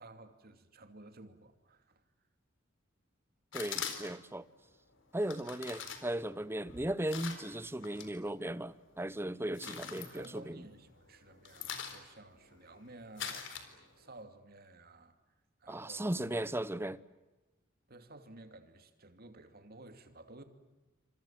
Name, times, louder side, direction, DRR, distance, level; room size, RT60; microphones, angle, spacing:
voice 1, 0.0-2.0 9.4-15.2 15.6-16.2 17.9-20.4, right 2 dB, 50° right, 2.7 m, -54 dB
sound 1, 3.5-4.3 5.2-8.1 8.5-9.0 9.3-10.9 11.2-14.2, left 7 dB, 65° left, 4.1 m, -43 dB
voice 2, 3.5-4.4 5.1-10.6 15.7-17.0, right 1 dB, 10° right, 0.8 m, -37 dB
28.5 x 26.5 x 7.5 m
head